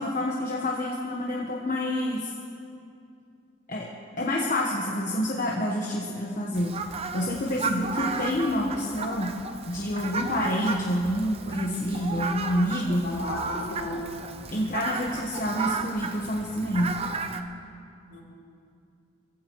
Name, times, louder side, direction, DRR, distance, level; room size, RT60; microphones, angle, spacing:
voice 1, 0.0-2.3 3.7-3.9 4.2-6.7 7.1-9.3 9.7-13.0 14.5-16.9, left 1 dB, 40° left, -2 dB, 1.2 m, -28 dB
Fowl, 6.5-17.4, right 4 dB, 30° right, 0.6 m, -34 dB
voice 2, 13.0-14.2 18.1-18.2, left 1 dB, 60° left, -5 dB, 3.6 m, -33 dB
23.0 x 16.0 x 3.1 m, 2.5 s
head